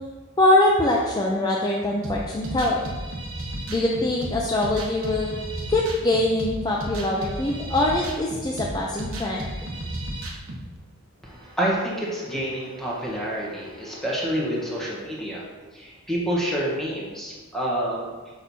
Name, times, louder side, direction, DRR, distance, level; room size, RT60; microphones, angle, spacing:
voice 1, 0.4-2.8 3.7-5.3 5.7-9.4, left 1 dB, 20° left, -3 dB, 0.5 m, -23 dB
sound 1, 2.0-10.6, right 1 dB, 65° right, 1.0 m, -33 dB
voice 2, 11.2-15.4 15.7-18.1, right 1 dB, ahead, -6 dB, 1.1 m, -28 dB
6.3 x 6.1 x 2.7 m, 1.3 s
head